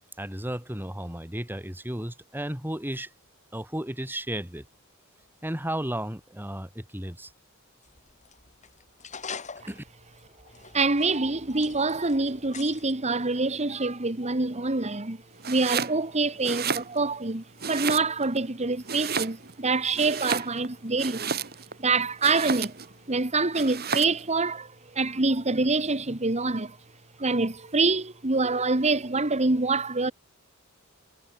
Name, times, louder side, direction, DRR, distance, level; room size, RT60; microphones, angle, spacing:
voice 1, 0.2-3.1 3.5-4.7 5.4-7.3 9.7-9.8, right 1 dB, 10° right, 3.7 m, -33 dB
sound 1, 7.8-12.9, left 6 dB, 35° left, 3.3 m, -44 dB
voice 2, 10.7-15.2 15.5-21.4 21.8-22.8 23.1-26.8 27.2-30.1, right 3 dB, 30° right, 1.7 m, -26 dB
Domestic sounds home sounds, 15.4-16.0 16.4-17.2 17.6-18.4 18.8-19.6 19.9-21.8 22.2-22.9 23.5-24.2, right 6 dB, 50° right, 4.9 m, -31 dB
head